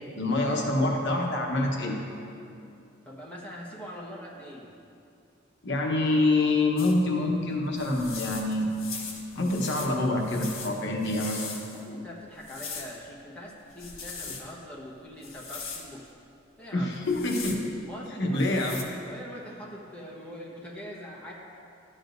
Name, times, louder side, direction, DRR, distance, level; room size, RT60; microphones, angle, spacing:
voice 1, 0.2-2.0 5.6-8.7 9.4-11.5 16.7-17.6 18.2-18.8, left 2 dB, 60° left, 0 dB, 1.0 m, -26 dB
voice 2, 3.0-4.7 11.7-16.1 16.6-17.0 17.9-18.7 19.1-21.3, equal, 5° left, -4 dB, 1.1 m, -43 dB
sound 1, 6.8-7.0 7.8-11.9 12.4-13.0 13.7-14.4 15.2-15.9 17.0-17.6 18.4-18.8, left 5 dB, 85° left, 1.2 m, -40 dB
12.5 x 8.5 x 2.6 m, 2.6 s
head